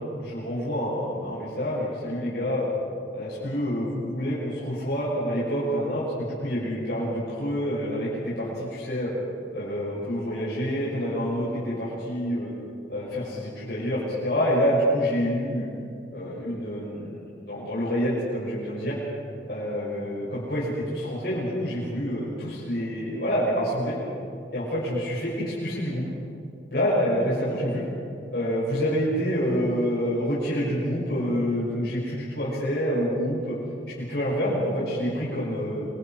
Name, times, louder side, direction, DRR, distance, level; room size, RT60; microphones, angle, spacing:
voice 1, 0.2-2.7 3.1-9.1 9.5-12.5 12.9-15.7 16.1-17.2 17.5-19.0 19.5-24.0 24.5-26.0 26.7-27.8 28.3-33.5 34.0-35.9, equal, 65° left, -9 dB, 6.6 m, -27 dB
27.5 x 27.0 x 4.7 m, 2.6 s
head